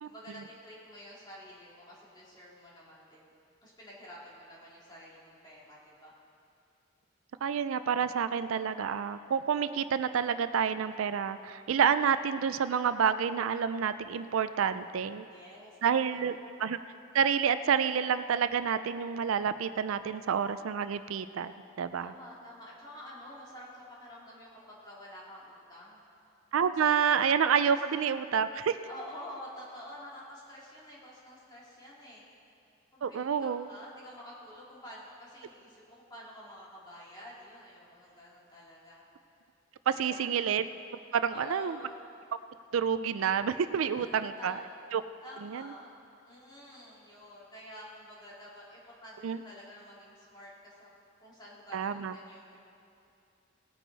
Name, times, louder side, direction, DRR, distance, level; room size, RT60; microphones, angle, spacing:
voice 1, 0.0-3.3 3.6-6.1 15.3-16.2 22.0-26.0 26.8-26.9 27.5-27.7 28.9-32.3 32.9-39.0 39.9-40.3 41.3-42.0 43.9-44.6 45.2-45.9 46.2-50.9 51.2-52.6, left 1 dB, 20° left, -7 dB, 2.7 m, -49 dB
voice 2, 7.4-15.2 15.8-16.3 16.6-16.8 17.1-21.5 21.8-22.1 26.5-28.8 33.0-33.7 39.9-40.7 41.1-41.8 42.7-44.6 44.9-45.0 45.4-45.7 49.2-49.4 51.7-52.1, right 7 dB, 80° right, 12 dB, 0.4 m, -28 dB
19.0 x 9.2 x 4.0 m, 2.6 s
head